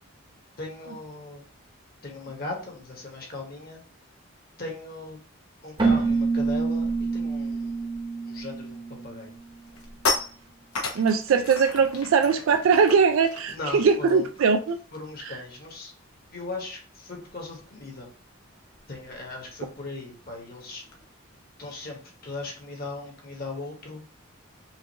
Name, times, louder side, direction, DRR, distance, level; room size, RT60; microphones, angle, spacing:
voice 1, 0.6-1.5 2.0-3.8 4.6-5.2 5.6-9.3 13.5-14.3 14.9-15.9 16.3-18.1 18.9-20.8 21.6-24.0, left 2 dB, 45° left, 0 dB, 1.2 m, -38 dB
Keyboard (musical), 5.8-9.4, right 4 dB, 20° right, 0.9 m, -26 dB
sound 1, 9.3-15.2 15.5-15.7 16.0-21.0, left 3 dB, 85° left, 1.1 m, -36 dB
voice 2, 10.9-14.8 15.2-15.4, right 5 dB, 70° right, 6 dB, 0.3 m, -21 dB
5.7 x 2.5 x 2.9 m, 0.39 s
head